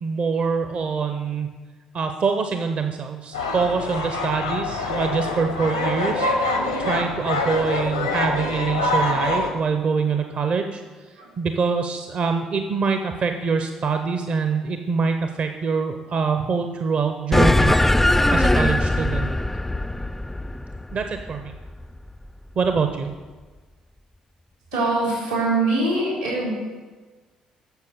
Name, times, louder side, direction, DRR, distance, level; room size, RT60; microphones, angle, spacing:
voice 1, 0.0-1.5 1.9-6.3 6.5-10.8 11.4-17.7 18.3-19.3 20.9-21.6 22.6-23.1, right 5 dB, 45° right, 6 dB, 0.7 m, -24 dB
sound 1, 3.3-9.5, left 2 dB, 85° left, 1.0 m, -25 dB
sound 2, 17.3-22.1, left 1 dB, 10° left, 0.3 m, -20 dB
voice 2, 24.7-26.5, right 2 dB, 85° right, -4 dB, 3.5 m, -23 dB
8.3 x 6.9 x 6.7 m, 1.3 s
figure-of-eight pair, 45°, 3 cm